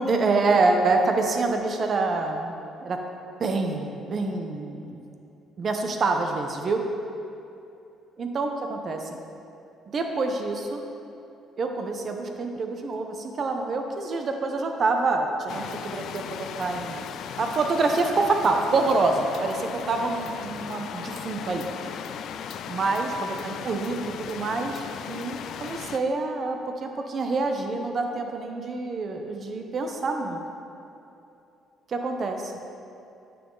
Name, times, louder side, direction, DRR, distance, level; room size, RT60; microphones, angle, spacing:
voice 1, 0.0-2.5 2.8-3.0 3.4-5.0 5.6-6.8 8.2-9.2 9.9-10.8 11.6-17.1 17.4-21.7 22.7-30.4 31.9-32.5, right 3 dB, 50° right, 4 dB, 0.9 m, -26 dB
sound 1, 15.5-26.0, left 8 dB, 70° left, 0.3 m, -37 dB
9.1 x 6.1 x 4.0 m, 2.8 s
cardioid pair, 85°, 0 cm